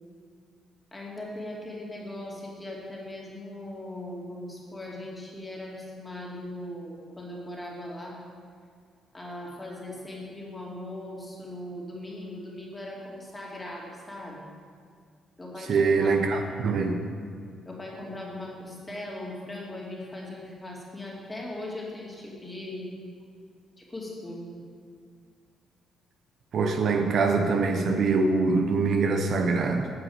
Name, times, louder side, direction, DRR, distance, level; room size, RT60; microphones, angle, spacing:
voice 1, 0.9-8.2 9.1-14.5 15.4-16.5 17.6-22.9 23.8-24.5, left 1 dB, 15° left, -3 dB, 2.7 m, -39 dB
voice 2, 15.7-17.0 26.5-29.9, right 4 dB, 60° right, 5 dB, 0.9 m, -24 dB
9.4 x 6.0 x 8.0 m, 2.1 s
cardioid pair, 90°, 0 cm